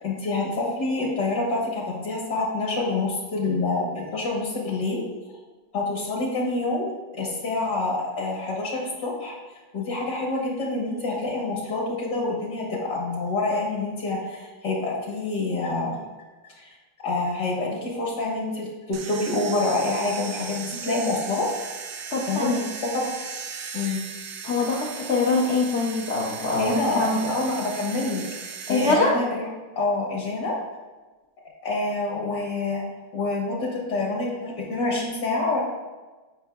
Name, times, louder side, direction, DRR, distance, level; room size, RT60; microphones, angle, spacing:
voice 1, 0.0-5.0 5.7-9.4 9.7-16.0 16.6-16.7 17.0-21.5 22.3-23.1 23.7-24.0 26.6-29.5 29.8-30.6 31.6-32.8 33.1-35.6, left 2 dB, 60° left, -2 dB, 1.7 m, -27 dB
sound 1, 18.9-28.9, right 6 dB, 70° right, 0.7 m, -37 dB
voice 2, 22.1-22.7 24.4-27.3 28.7-29.1, left 3 dB, 75° left, -3 dB, 0.6 m, -24 dB
8.9 x 5.3 x 2.3 m, 1.3 s
omnidirectional pair, 2.1 m